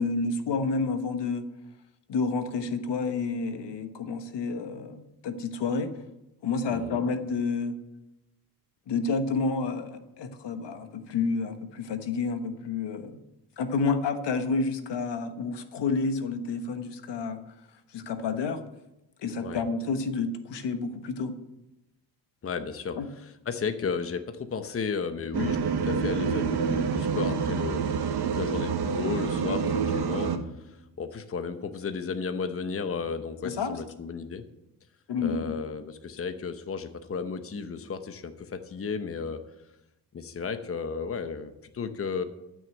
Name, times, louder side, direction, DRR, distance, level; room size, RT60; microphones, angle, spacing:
voice 1, 0.0-1.5 2.1-5.9 6.4-7.8 8.9-13.2 13.6-17.4 17.9-18.6 19.2-21.3 23.0-23.1 33.4-33.8 35.1-35.6, left 4 dB, 80° left, 8 dB, 1.3 m, -29 dB
voice 2, 22.4-23.0 23.5-34.4 35.2-39.4 40.1-42.2, left 5 dB, 35° left, 9 dB, 0.9 m, -34 dB
sound 1, 25.3-30.4, right 6 dB, 65° right, 1.2 m, -27 dB
12.5 x 6.3 x 7.9 m, 0.92 s
cardioid pair, 120°, 41 cm